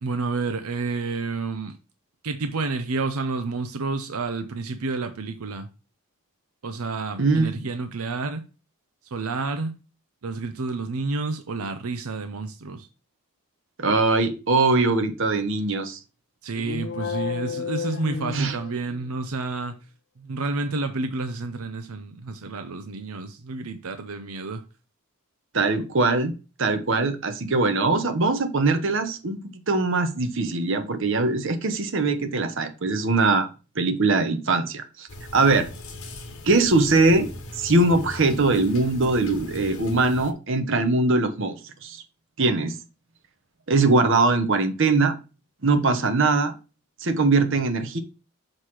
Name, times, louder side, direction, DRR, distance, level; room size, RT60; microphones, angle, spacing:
voice 1, 0.0-1.7 2.2-5.7 6.6-8.4 9.1-9.7 10.2-12.9 16.4-19.8 20.2-24.6, right 3 dB, 90° right, 0.7 m, -30 dB
voice 2, 7.2-7.7 13.8-16.0 18.3-18.6 25.5-26.3 26.6-33.5 33.7-35.1 35.3-35.7 36.4-42.0 42.4-42.7 43.7-45.2 45.6-46.5 47.0-48.0, right 3 dB, 60° right, 1.0 m, -22 dB
sound 1, 16.5-19.1, left 6 dB, 50° left, 0.4 m, -32 dB
sound 2, 35.1-40.3, left 1 dB, 70° left, 1.3 m, -39 dB
6.5 x 3.2 x 5.7 m
head